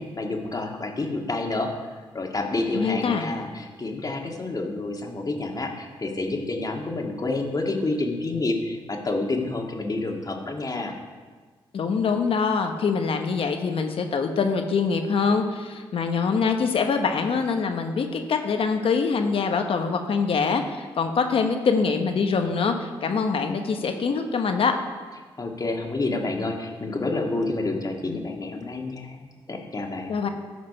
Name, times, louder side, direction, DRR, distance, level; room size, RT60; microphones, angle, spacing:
voice 1, 0.0-1.7 2.1-10.9 25.4-30.1, left 2 dB, 40° left, 2 dB, 1.8 m, -29 dB
voice 2, 2.7-3.2 11.7-24.7 30.1-30.3, left 5 dB, 65° left, 5 dB, 1.0 m, -24 dB
13.0 x 5.1 x 5.5 m, 1.5 s
cardioid pair, 60°, 10 cm